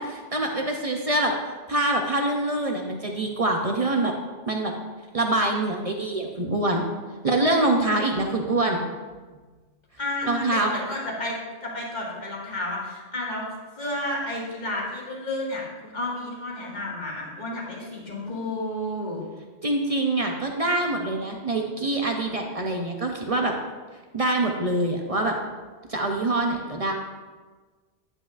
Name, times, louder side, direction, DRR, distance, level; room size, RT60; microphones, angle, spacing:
voice 1, 0.0-1.3 1.7-4.1 4.5-4.7 5.1-6.8 7.2-8.8 10.3-10.7 19.6-23.5 24.1-25.3 25.9-26.9, right 2 dB, 40° right, 2 dB, 0.6 m, -25 dB
voice 2, 10.0-11.4 11.6-13.5 13.8-19.2, left 1 dB, 40° left, -4 dB, 1.9 m, -31 dB
9.7 x 8.5 x 2.4 m, 1.4 s
omnidirectional pair, 1.2 m